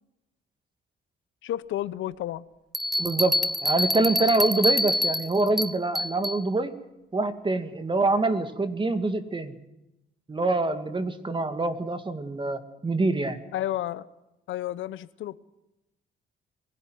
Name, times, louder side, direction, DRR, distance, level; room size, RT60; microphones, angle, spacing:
voice 1, 1.4-2.4 13.5-14.1 14.5-15.4, left 13 dB, 75° left, 0.9 m, -31 dB
Bell, 2.7-6.4, left 1 dB, ahead, 1.1 m, -26 dB
voice 2, 3.0-6.7 7.1-9.6 10.3-13.4, right 2 dB, 25° right, 2.3 m, -25 dB
22.5 x 16.5 x 9.4 m
cardioid pair, 90°, 20 cm